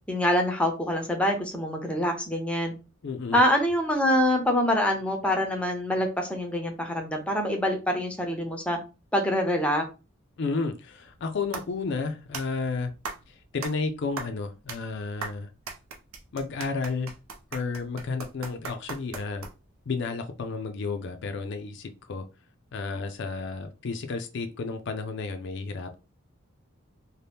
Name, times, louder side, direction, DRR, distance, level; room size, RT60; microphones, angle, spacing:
voice 1, 0.1-2.7 3.3-8.8 9.1-9.8, left 1 dB, 5° left, 0.5 m, -25 dB
voice 2, 3.0-3.4 10.4-12.9 13.3-15.5 16.3-17.1 17.5-19.5 19.9-22.2 22.7-25.9, left 4 dB, 60° left, 0.4 m, -32 dB
sound 1, 11.1-19.8, right 4 dB, 90° right, 0.6 m, -40 dB
2.7 x 2.1 x 3.3 m
head